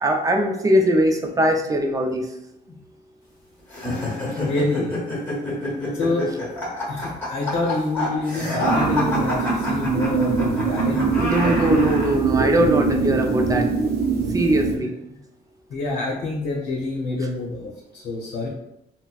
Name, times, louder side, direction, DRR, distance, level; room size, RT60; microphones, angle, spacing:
voice 1, 0.0-2.3 11.2-13.7 14.3-14.9, right 1 dB, 20° right, 3 dB, 0.4 m, -21 dB
sound 1, 3.7-12.2, left 1 dB, 10° left, 1.2 m, -28 dB
voice 2, 4.3-4.9 5.9-6.3 6.9-11.6 15.1-15.2 15.7-18.5, left 2 dB, 75° left, -3 dB, 0.7 m, -27 dB
sound 2, 8.6-14.8, right 4 dB, 75° right, 0.5 m, -23 dB
3.9 x 2.0 x 2.3 m, 0.85 s
cardioid pair, 115°, 17 cm